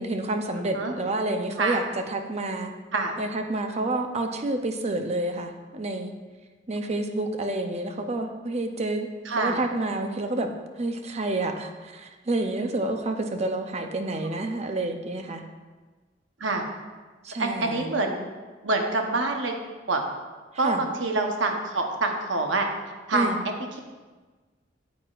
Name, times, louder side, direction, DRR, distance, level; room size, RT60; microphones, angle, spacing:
voice 1, 0.0-2.7 3.2-6.1 6.7-9.1 9.4-10.5 10.8-15.4 17.2-17.9 20.6-20.8 23.1-23.4, right 2 dB, 35° right, 5 dB, 0.6 m, -29 dB
voice 2, 9.3-9.6 16.4-16.6 17.4-18.3 18.6-19.5 19.9-20.0 20.6-22.7 23.1-23.3, right 3 dB, 85° right, 3 dB, 1.0 m, -26 dB
9.2 x 8.2 x 2.5 m, 1.3 s
head